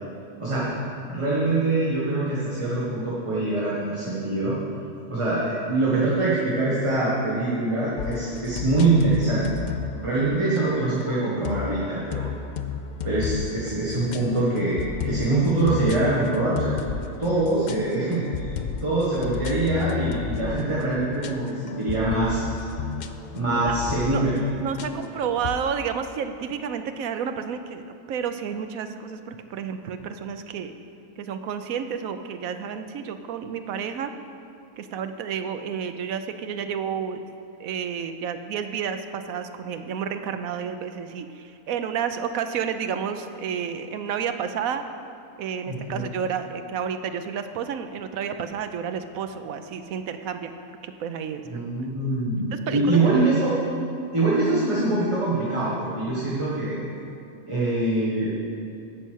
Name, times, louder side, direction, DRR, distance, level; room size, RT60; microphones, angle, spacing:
voice 1, 0.4-0.7 1.1-4.5 5.1-9.5 10.0-12.2 13.0-16.7 17.2-18.5 18.8-22.4 23.3-24.4 45.7-46.0 51.5-53.6 54.1-56.8 57.5-58.4, right 2 dB, 20° right, -8 dB, 1.7 m, -24 dB
sound 1, 8.0-25.6, left 7 dB, 80° left, 0.4 m, -33 dB
voice 2, 24.6-30.7 31.2-34.1 34.8-37.2 37.6-44.9 45.4-50.5 50.8-51.6 52.5-53.1, right 7 dB, 90° right, 8 dB, 1.1 m, -31 dB
15.5 x 5.6 x 6.3 m, 2.6 s
omnidirectional pair, 1.4 m